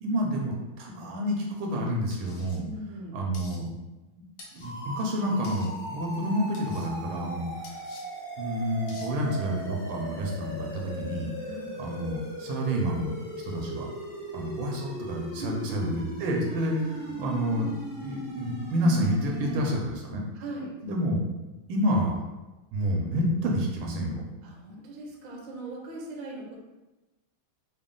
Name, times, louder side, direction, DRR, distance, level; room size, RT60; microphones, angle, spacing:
voice 1, 0.0-2.6 3.1-3.7 4.5-7.4 8.4-11.3 11.7-13.1 13.4-13.9 14.3-17.7 18.0-20.2 20.8-21.2 21.7-22.2 22.7-24.3, equal, 85° right, 0 dB, 1.6 m, -29 dB
sound 1, 2.1-2.6 3.3-3.6 4.4-4.7 5.4-5.7 6.5-6.9 7.6-8.0 8.9-9.1, left 3 dB, 75° left, 1.5 m, -48 dB
voice 2, 2.5-3.2 11.4-11.8 15.4-15.9 20.3-20.8 24.4-26.6, right 1 dB, 60° right, -1 dB, 0.8 m, -39 dB
sound 2, 4.6-19.7, right 1 dB, 30° left, 1.1 m, -38 dB
4.1 x 2.1 x 3.7 m, 1.1 s
omnidirectional pair, 2.3 m